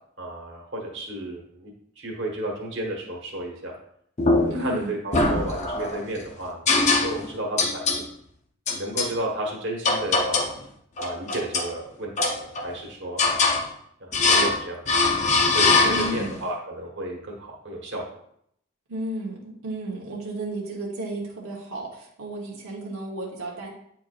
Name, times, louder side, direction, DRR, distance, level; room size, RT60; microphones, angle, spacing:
voice 1, 0.2-3.7 4.3-8.0 8.7-10.5 11.0-13.4 14.0-14.8 15.5-18.0, right 1 dB, 55° right, -1 dB, 1.4 m, -33 dB
sound 1, 4.2-4.7 5.1-6.0 6.7-7.3 7.6-8.0 8.7-9.1 9.8-10.6 11.0-11.7 12.2-12.8 13.2-13.6 14.1-14.6 14.9-16.3, left 3 dB, 35° left, 0.6 m, -22 dB
voice 2, 4.5-5.0 15.9-16.4 18.9-23.7, right 1 dB, 85° right, -3 dB, 1.3 m, -33 dB
9.1 x 4.6 x 2.5 m, 0.70 s
head